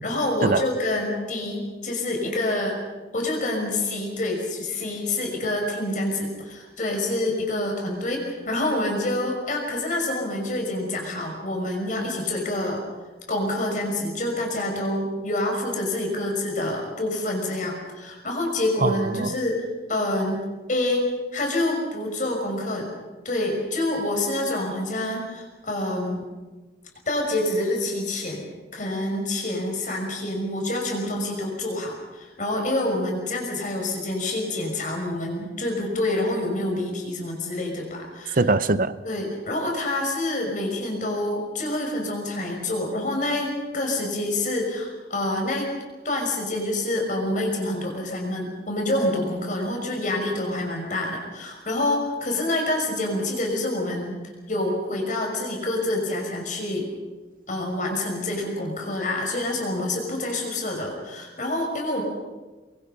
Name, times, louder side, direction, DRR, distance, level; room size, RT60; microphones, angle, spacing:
voice 1, 0.0-2.8 3.1-12.8 13.3-20.4 20.7-21.0 21.3-22.9 23.2-26.2 27.1-38.4 39.0-45.7 46.0-54.2 54.5-56.9 57.5-62.0, left 1 dB, 45° left, 1 dB, 6.1 m, -27 dB
voice 2, 18.8-19.3 38.4-38.9, right 2 dB, 50° right, 15 dB, 0.8 m, -22 dB
24.5 x 23.0 x 5.6 m, 1.2 s
head